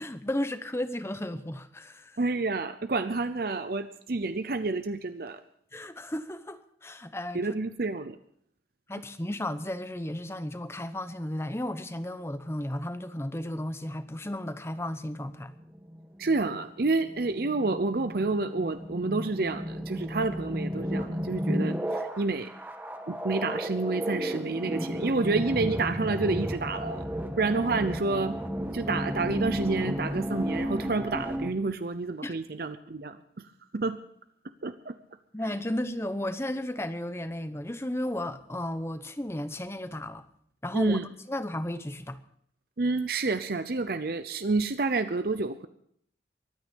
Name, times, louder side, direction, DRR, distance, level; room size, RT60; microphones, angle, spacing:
voice 1, 0.0-2.2 5.7-7.5 8.9-15.5 32.2-32.4 35.3-40.3 40.6-41.0 41.3-42.2, left 1 dB, 15° left, 0.8 m, -34 dB
voice 2, 2.2-5.4 7.3-8.2 16.2-22.5 23.1-28.4 28.7-33.5 33.7-34.0 34.6-35.0 40.7-41.1 42.8-45.7, right 3 dB, 55° right, 0.7 m, -29 dB
sound 1, 15.1-31.5, equal, 10° right, 1.3 m, -33 dB
23.5 x 9.4 x 5.2 m
head